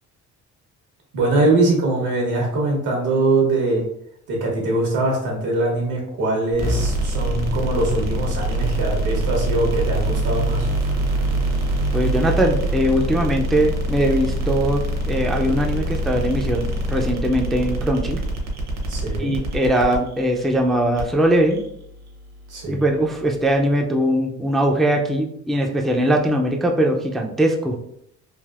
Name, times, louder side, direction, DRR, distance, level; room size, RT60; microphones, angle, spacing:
voice 1, 1.1-3.8 4.3-10.7 18.9-19.3 22.5-22.9, right 2 dB, 80° right, -1 dB, 1.2 m, -22 dB
sound 1, 6.6-23.6, right 1 dB, 60° right, 0.9 m, -25 dB
voice 2, 11.9-18.2 19.2-21.6 22.7-27.8, right 1 dB, ahead, 1 dB, 0.3 m, -21 dB
3.3 x 2.5 x 2.4 m, 0.73 s
cardioid pair, 90°, 30 cm